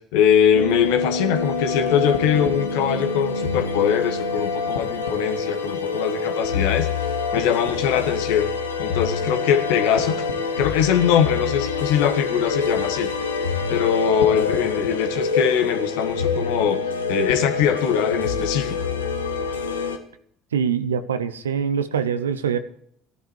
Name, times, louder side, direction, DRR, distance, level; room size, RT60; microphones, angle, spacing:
voice 1, 0.1-6.9 7.3-8.5 8.8-10.3 10.6-13.1 13.7-16.8 17.1-18.8, left 8 dB, 65° left, 7 dB, 1.6 m, -22 dB
sound 1, 0.5-20.0, left 4 dB, 80° left, 1.3 m, -26 dB
voice 2, 20.5-22.6, right 7 dB, 80° right, 12 dB, 0.9 m, -24 dB
16.0 x 11.0 x 4.7 m, 0.63 s
figure-of-eight pair, 60°, 0 cm